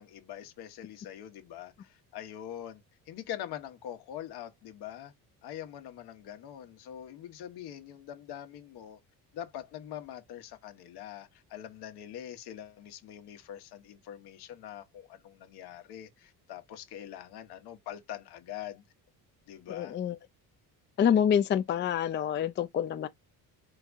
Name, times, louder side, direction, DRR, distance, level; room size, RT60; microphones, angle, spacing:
voice 1, 0.0-5.1 5.4-9.0 9.3-18.8 19.5-20.0, left 11 dB, 75° left, 1.2 m, -44 dB
voice 2, 19.7-20.2 21.0-23.1, left 8 dB, 30° left, 0.4 m, -27 dB
4.6 x 3.5 x 2.4 m
cardioid pair, 105°, 39 cm